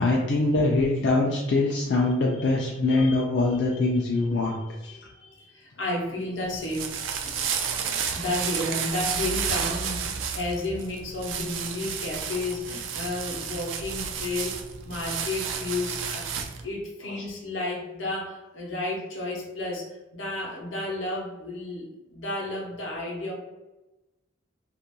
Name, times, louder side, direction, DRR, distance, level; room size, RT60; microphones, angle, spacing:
voice 1, 0.0-4.6, left 2 dB, 65° left, -2 dB, 0.4 m, -23 dB
voice 2, 2.0-3.2 4.3-7.4 8.1-23.3, left 2 dB, 90° left, -2 dB, 0.8 m, -33 dB
sound 1, 6.4-16.6, right 6 dB, 90° right, 0.3 m, -31 dB
2.4 x 2.2 x 2.8 m, 1.0 s
head